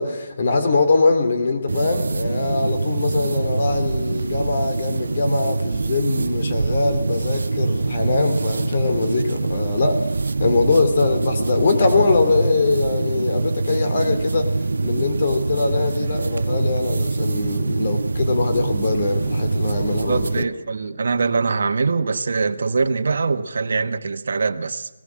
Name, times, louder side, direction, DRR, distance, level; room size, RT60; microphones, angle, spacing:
voice 1, 0.0-10.1 10.4-14.5 14.8-20.5, left 3 dB, 40° left, 3.1 m, -22 dB
sound 1, 1.7-20.4, right 3 dB, 75° right, 0.7 m, -24 dB
voice 2, 20.1-24.9, right 4 dB, 55° right, 1.3 m, -23 dB
19.0 x 18.0 x 7.6 m
hypercardioid pair, 170°, 0 cm